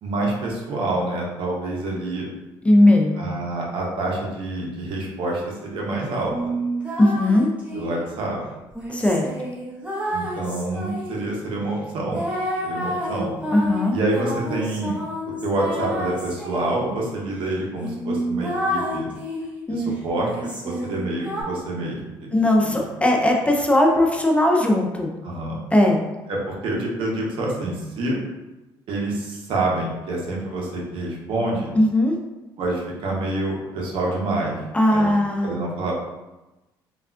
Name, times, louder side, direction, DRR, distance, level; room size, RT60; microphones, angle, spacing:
voice 1, 0.0-2.3 3.1-6.5 7.7-8.4 10.1-12.3 12.6-13.3 13.9-14.9 15.4-19.1 19.7-22.3 22.6-22.8 25.2-25.6 26.3-28.2 28.9-31.7 32.6-34.6 34.9-35.1 35.4-35.9, right 2 dB, 65° right, -2 dB, 0.8 m, -27 dB
voice 2, 2.6-3.2 7.0-7.5 8.9-9.2 13.5-14.0 19.7-19.9 22.3-25.1 25.7-26.0 31.8-32.2 34.7-35.6, left 1 dB, 15° left, 1 dB, 0.4 m, -18 dB
sound 1, 6.3-8.0 8.7-11.3 12.1-16.8 17.4-17.5 17.8-19.6 20.2-21.4, equal, 15° right, 0.9 m, -29 dB
3.3 x 2.3 x 2.4 m, 1.1 s
cardioid pair, 90°, 9 cm